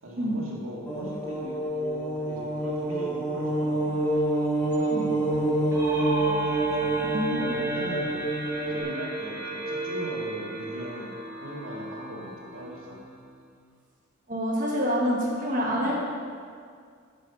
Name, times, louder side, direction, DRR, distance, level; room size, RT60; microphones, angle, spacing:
voice 1, 0.0-4.1 4.6-7.1 7.4-8.2 8.7-13.0 15.6-16.0, equal, 85° right, -3 dB, 1.9 m, -40 dB
sound 1, 0.9-8.8, right 2 dB, 10° left, 1.4 m, -27 dB
sound 2, 5.7-13.3, right 1 dB, 15° right, 1.2 m, -34 dB
voice 2, 7.0-7.5 14.3-16.0, equal, 40° right, -4 dB, 1.4 m, -27 dB
9.6 x 5.4 x 5.8 m, 2.2 s
head